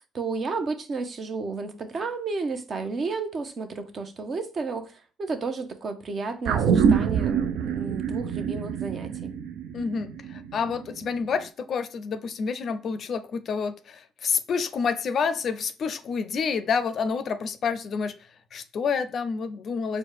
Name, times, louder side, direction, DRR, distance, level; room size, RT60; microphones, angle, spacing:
voice 1, 0.1-4.9 5.2-9.3, right 4 dB, 45° right, 0.8 m, -32 dB
sound 1, 6.4-11.1 11.4-11.5, right 7 dB, 75° right, 0.5 m, -25 dB
voice 2, 9.7-18.1 18.5-20.0, left 5 dB, 55° left, 0.5 m, -28 dB
4.3 x 2.2 x 4.7 m
supercardioid pair, 80°, 0 cm